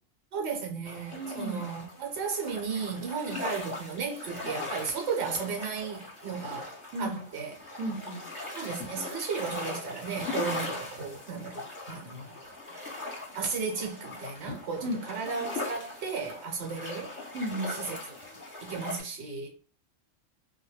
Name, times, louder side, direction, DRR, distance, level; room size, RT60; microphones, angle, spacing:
voice 1, 0.3-7.6 8.5-12.4 13.3-17.1 17.7-18.0 18.6-19.5, right 5 dB, 60° right, 1.0 m, -35 dB
sound 1, 0.8-19.0, left 2 dB, 25° left, 1.0 m, -40 dB
voice 2, 1.1-1.7 6.9-7.2 7.8-8.3 14.8-15.0 17.3-17.8, right 1 dB, 90° right, 1.0 m, -34 dB
2.3 x 2.1 x 3.0 m
omnidirectional pair, 1.4 m